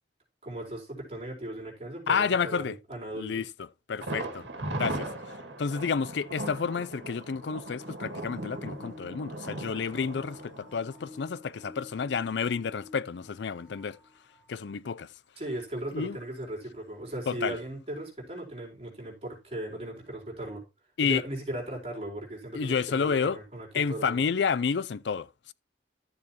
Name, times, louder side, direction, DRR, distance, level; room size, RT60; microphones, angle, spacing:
voice 1, 0.4-3.4 15.4-20.6 21.0-24.2, right 1 dB, 35° right, 4.4 m, -37 dB
voice 2, 2.1-2.8 3.1-3.5 3.9-4.5 4.8-5.1 5.6-14.0 14.5-15.1 15.9-16.2 17.3-17.6 21.0-21.2 22.5-23.4 23.7-25.5, left 6 dB, 75° left, 0.4 m, -30 dB
Thunder, 4.0-11.8 12.1-12.2 12.6-12.7, right 1 dB, 80° right, 2.0 m, -38 dB
sound 1, 6.9-14.5 15.2-15.3 16.3-16.4, left 3 dB, 55° left, 4.7 m, -52 dB
12.5 x 7.2 x 3.0 m
head